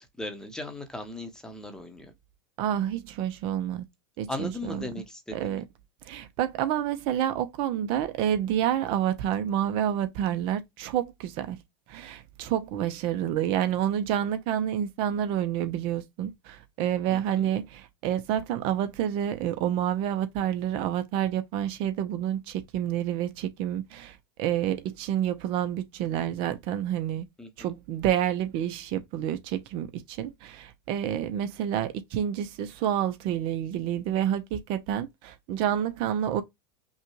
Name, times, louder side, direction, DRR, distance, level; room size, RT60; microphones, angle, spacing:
voice 1, 0.2-2.1 4.3-5.6 17.1-17.5 27.4-27.7, left 2 dB, 5° left, 0.9 m, -38 dB
voice 2, 2.6-3.9 4.2-4.9 5.3-5.6 6.0-11.6 11.9-27.3 27.6-36.4, right 10 dB, 45° right, 0.8 m, -29 dB
5.5 x 2.4 x 3.1 m
supercardioid pair, 140°, 13 cm